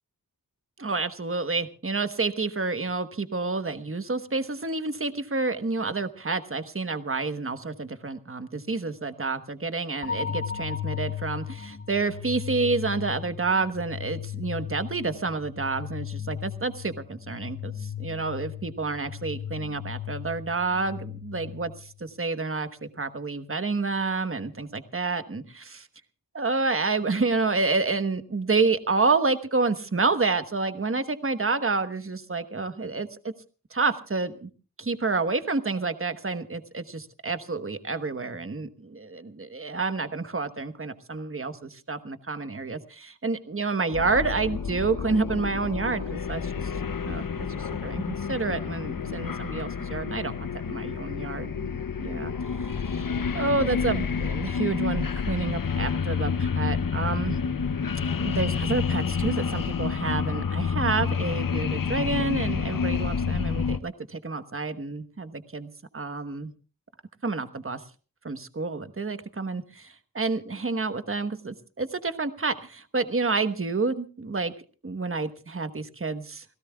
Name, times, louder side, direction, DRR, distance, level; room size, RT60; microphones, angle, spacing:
voice 1, 0.8-25.9 26.3-33.2 33.7-34.5 34.8-46.7 47.0-51.7 52.0-53.1 53.3-57.4 58.2-66.5 67.2-67.8 68.2-74.5 74.8-76.4, right 3 dB, 35° right, 10 dB, 1.2 m, -29 dB
sound 1, 10.0-22.0, left 9 dB, 40° left, 1.6 m, -36 dB
sound 2, 43.9-63.8, left 6 dB, 65° left, 0.8 m, -29 dB
29.5 x 17.0 x 2.3 m, 0.37 s
wide cardioid pair, 70°, 36 cm